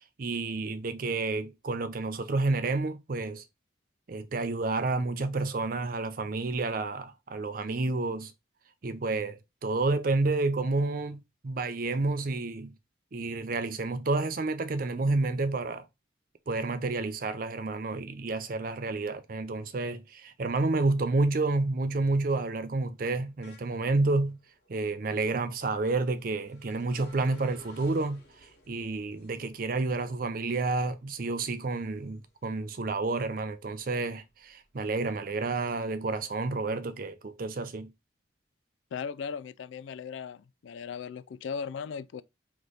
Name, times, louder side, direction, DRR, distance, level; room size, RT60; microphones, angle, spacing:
voice 1, 0.2-3.4 4.1-8.3 8.8-12.7 13.1-15.9 16.5-24.4 24.7-28.2 28.7-37.9, right 3 dB, 50° right, 0.5 m, -30 dB
sound 1, 21.7-32.6 33.0-34.7, left 1 dB, 50° left, 1.9 m, -58 dB
voice 2, 38.9-42.2, left 6 dB, 80° left, 0.3 m, -37 dB
3.3 x 3.0 x 3.9 m
head